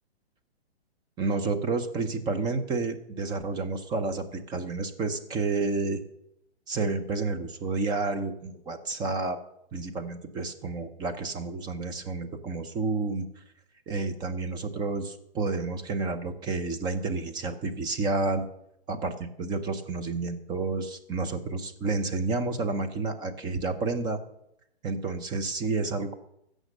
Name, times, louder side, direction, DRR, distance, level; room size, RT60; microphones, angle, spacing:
voice 1, 1.2-6.0 6.7-9.4 9.7-13.4 13.9-18.5 18.9-24.2 24.8-26.1, right 3 dB, 10° right, 7 dB, 0.7 m, -30 dB
16.0 x 6.4 x 6.5 m, 0.79 s
hypercardioid pair, 150°, 33 cm